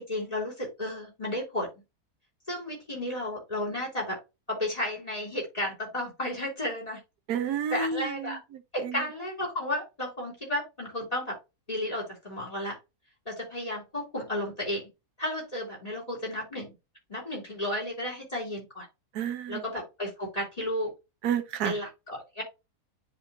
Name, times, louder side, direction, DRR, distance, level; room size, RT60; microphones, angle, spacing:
voice 1, 0.0-1.7 2.5-4.2 4.5-7.0 7.7-8.4 8.7-11.4 11.7-12.8 13.2-14.9 15.2-16.7 17.1-18.9 19.5-20.9 21.6-22.4, left 1 dB, 20° left, 3.2 m, -33 dB
voice 2, 7.3-8.4 8.8-9.0 19.1-19.6 21.2-21.8, right 7 dB, 70° right, 1.3 m, -30 dB
10.0 x 3.4 x 2.7 m
omnidirectional pair, 1.7 m